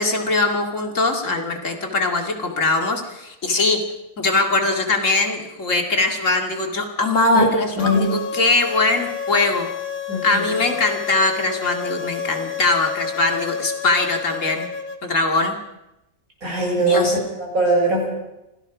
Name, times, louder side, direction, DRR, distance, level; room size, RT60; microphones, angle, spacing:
voice 1, 0.0-3.8 4.2-9.7 10.2-14.7 15.0-15.6 16.8-17.2, left 3 dB, 65° left, 4 dB, 2.7 m, -21 dB
sound 1, 7.8-15.0, left 7 dB, 90° left, 2.0 m, -30 dB
voice 2, 7.8-8.1 10.1-10.5 16.4-18.1, right 1 dB, 80° right, -2 dB, 7.7 m, -21 dB
25.5 x 17.0 x 6.1 m, 0.91 s
omnidirectional pair, 1.4 m